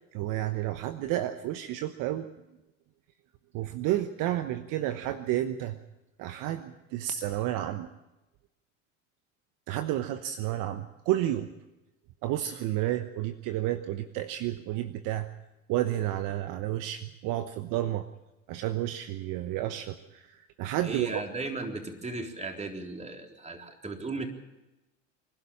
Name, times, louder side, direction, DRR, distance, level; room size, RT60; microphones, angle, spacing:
voice 1, 0.1-2.2 3.5-5.7 6.2-7.9 9.7-11.5 12.2-15.3 15.7-18.1 18.5-20.2 20.6-21.2, right 13 dB, 55° right, 10 dB, 1.1 m, -31 dB
voice 2, 20.8-24.3, right 3 dB, 15° right, 3 dB, 3.7 m, -36 dB
25.5 x 12.0 x 8.6 m, 0.97 s
hypercardioid pair, 80°, 38 cm